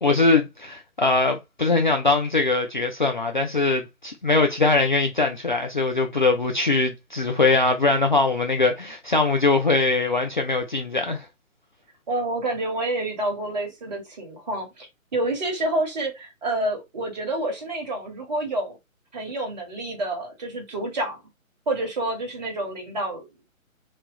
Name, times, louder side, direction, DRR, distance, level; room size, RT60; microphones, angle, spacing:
voice 1, 0.0-11.3, left 3 dB, 35° left, 0.5 m, -21 dB
voice 2, 12.1-14.9 15.1-18.8 19.1-21.2 21.7-23.3, right 1 dB, 30° right, 1.6 m, -28 dB
3.1 x 3.0 x 3.8 m
figure-of-eight pair, 140°, 42 cm